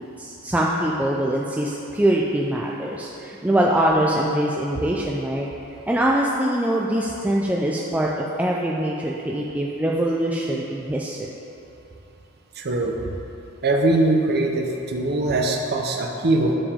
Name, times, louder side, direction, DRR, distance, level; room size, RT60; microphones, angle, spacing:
voice 1, 0.0-5.5 5.9-11.3, right 1 dB, 5° right, -3 dB, 0.4 m, -23 dB
voice 2, 12.6-12.9 13.6-16.5, right 2 dB, 50° right, 1 dB, 0.8 m, -21 dB
9.9 x 7.1 x 3.6 m, 2.9 s
head